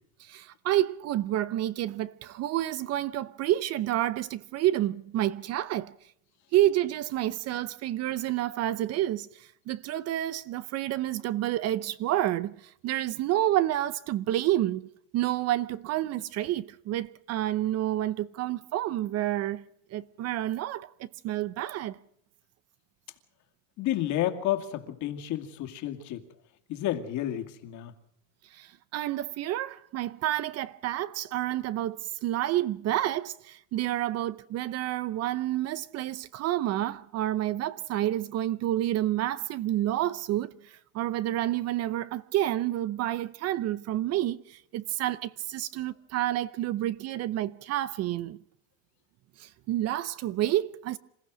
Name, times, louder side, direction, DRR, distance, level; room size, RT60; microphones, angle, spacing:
voice 1, 0.2-5.9 6.5-14.8 15.1-19.6 19.9-22.0 28.5-48.4 49.4-51.0, right 13 dB, 40° right, 0.7 m, -29 dB
voice 2, 23.8-26.2 26.7-27.9, left 12 dB, 50° left, 2.4 m, -31 dB
27.0 x 15.0 x 6.2 m
supercardioid pair, 135°, 38 cm